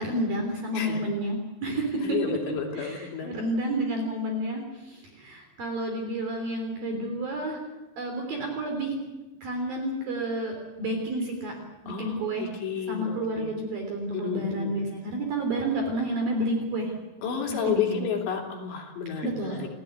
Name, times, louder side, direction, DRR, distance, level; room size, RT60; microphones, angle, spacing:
voice 1, 0.0-2.4 2.7-7.6 8.0-8.9 9.4-11.5 11.8-12.5 12.9-16.9 17.5-18.1 19.2-19.6, right 1 dB, 50° right, 3 dB, 4.8 m, -30 dB
voice 2, 2.0-3.3 11.9-13.5 14.1-14.7 17.2-19.7, left 7 dB, 65° left, 1 dB, 5.3 m, -31 dB
29.0 x 15.5 x 9.5 m, 1.1 s
omnidirectional pair, 5.5 m